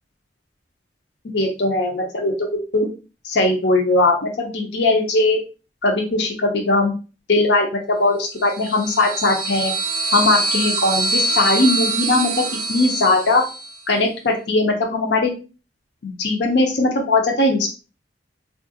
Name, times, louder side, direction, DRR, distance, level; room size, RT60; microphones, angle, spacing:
voice 1, 1.3-2.9 3.2-5.4 5.8-6.9 7.3-9.7 10.1-12.4 12.7-13.4 13.9-15.3 16.0-17.7, left 2 dB, 65° left, 1 dB, 0.6 m, -19 dB
sound 1, 8.4-13.8, right 2 dB, 45° right, 0.4 m, -24 dB
3.5 x 2.4 x 2.6 m, 0.33 s
head